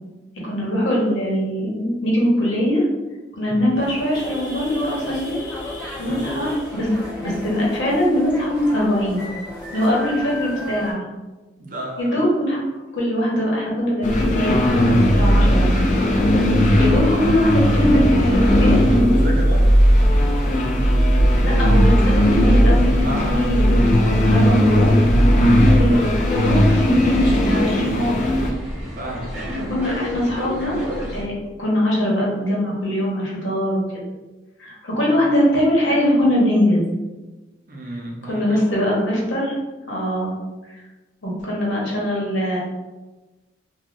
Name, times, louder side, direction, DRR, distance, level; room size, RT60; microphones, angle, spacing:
voice 1, 0.4-2.9 3.4-5.4 6.0-6.9 7.2-9.2 9.7-11.0 12.0-12.6 12.9-15.7 16.5-18.9 21.4-24.9 25.8-28.3 29.5-30.7 31.1-31.3 31.6-33.8 34.6-36.8 38.2-39.6 39.9-40.3 41.2-42.6, equal, 80° left, -4 dB, 0.9 m, -22 dB
voice 2, 3.4-3.8 6.0-6.4 11.6-12.1 16.5-17.3 19.1-19.7 23.0-23.7 25.5-26.1 29.0-29.8 37.7-38.4, equal, 45° right, -1 dB, 0.5 m, -32 dB
sound 1, 3.7-10.9, left 1 dB, 15° left, 0.7 m, -33 dB
sound 2, 14.0-28.5, equal, 40° left, 0.3 m, -16 dB
sound 3, 26.0-31.2, equal, 10° right, 1.1 m, -31 dB
3.2 x 2.3 x 2.5 m, 1.2 s
head